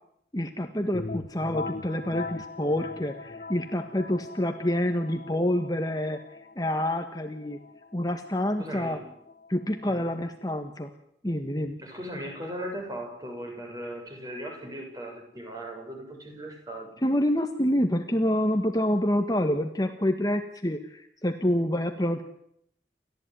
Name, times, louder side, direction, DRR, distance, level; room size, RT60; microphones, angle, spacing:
voice 1, 0.3-6.2 6.5-7.6 7.9-9.0 9.5-10.9 11.2-11.8 17.0-22.2, left 1 dB, 20° left, 6 dB, 1.6 m, -27 dB
sound 1, 0.9-10.5, left 3 dB, 45° left, 0.9 m, -41 dB
voice 2, 8.6-9.1 9.8-10.1 11.8-16.9, equal, 20° right, 3 dB, 7.0 m, -38 dB
29.5 x 14.0 x 9.4 m, 0.71 s
head